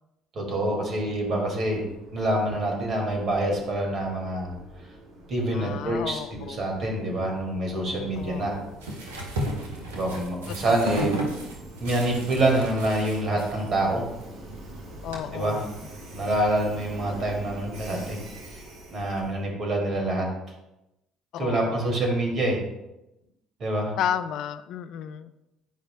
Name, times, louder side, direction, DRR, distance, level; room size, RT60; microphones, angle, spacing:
voice 1, 0.4-1.9 2.1-4.5 5.3-8.6 9.9-11.1 11.8-14.0 15.3-15.6 16.1-18.2 18.9-20.3 21.4-22.6 23.6-23.9, right 1 dB, 50° right, 0 dB, 2.0 m, -26 dB
Train, 0.7-19.5, right 1 dB, 70° right, 1.6 m, -45 dB
voice 2, 5.5-6.7 8.2-8.8 10.7-11.1 15.0-15.7 21.3-22.0 24.0-25.3, left 9 dB, 65° left, 12 dB, 0.3 m, -33 dB
sound 1, 8.1-15.2, right 1 dB, 90° right, 0.9 m, -34 dB
9.2 x 5.0 x 2.2 m, 0.92 s
hypercardioid pair, 65°, 0 cm